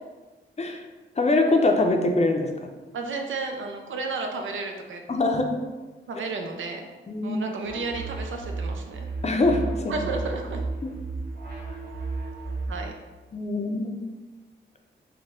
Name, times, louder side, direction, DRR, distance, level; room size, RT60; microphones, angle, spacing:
voice 1, 1.2-2.7 5.1-5.6 7.1-7.4 9.2-9.9 10.8-10.9 13.3-14.0, left 2 dB, 35° left, 4 dB, 0.5 m, -23 dB
voice 2, 2.9-5.0 6.1-6.9 7.2-9.1 9.9-10.6 12.7-12.9, right 3 dB, 85° right, 3 dB, 0.5 m, -32 dB
sound 1, 7.7-12.9, right 3 dB, 50° right, 1.2 m, -33 dB
4.1 x 2.2 x 3.5 m, 1.3 s
cardioid pair, 75°, 20 cm